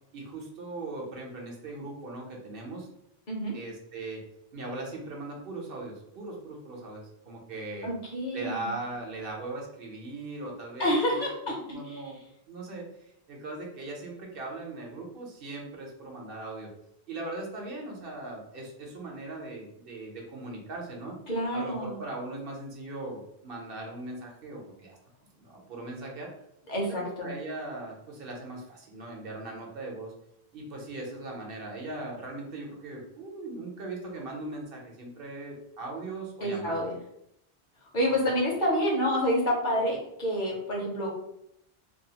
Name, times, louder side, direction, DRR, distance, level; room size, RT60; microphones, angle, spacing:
voice 1, 0.1-2.9 3.5-4.2 4.5-7.9 8.3-12.2 12.5-12.9 13.3-16.7 17.1-21.2 21.5-25.0 25.4-26.3 26.9-30.1 30.5-36.9, right 2 dB, 65° right, -1 dB, 0.9 m, -39 dB
voice 2, 3.3-3.6 7.8-8.7 10.8-12.0 21.3-22.0 26.7-27.3 36.4-37.0 37.9-41.1, equal, 55° left, -2 dB, 0.9 m, -28 dB
2.6 x 2.3 x 2.8 m, 0.78 s
omnidirectional pair, 1.0 m